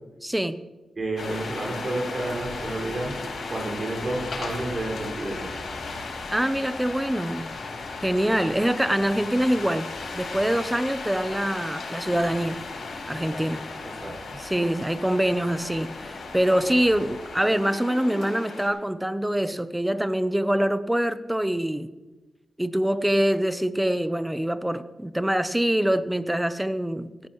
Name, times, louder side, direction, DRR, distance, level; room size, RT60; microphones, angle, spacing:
voice 1, 0.2-0.6 6.3-7.5 8.0-12.6 13.1-13.6 14.4-21.9 22.6-27.3, right 1 dB, 5° right, 13 dB, 0.7 m, -25 dB
voice 2, 1.0-3.1 3.5-5.4 13.1-13.4 14.0-14.4, right 2 dB, 40° right, -1 dB, 5.4 m, -30 dB
sound 1, 1.2-18.7, left 3 dB, 80° left, 4.2 m, -36 dB
18.0 x 13.5 x 3.1 m, 1.2 s
wide cardioid pair, 105°, 0 cm